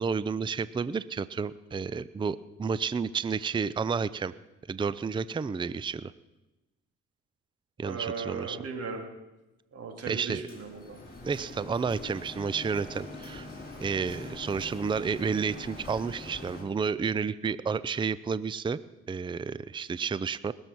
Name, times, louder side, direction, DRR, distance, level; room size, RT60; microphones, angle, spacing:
voice 1, 0.0-4.3 4.7-6.1 7.8-8.6 10.1-10.4 11.2-13.5 13.8-18.8 19.1-20.5, right 5 dB, 15° right, 17 dB, 0.5 m, -31 dB
voice 2, 7.8-9.0 9.7-11.0, right 5 dB, 50° right, 3 dB, 3.1 m, -37 dB
Printer, 10.5-16.6, left 2 dB, 30° left, 4.7 m, -43 dB
20.5 x 7.2 x 6.1 m, 1.0 s
supercardioid pair, 70°, 31 cm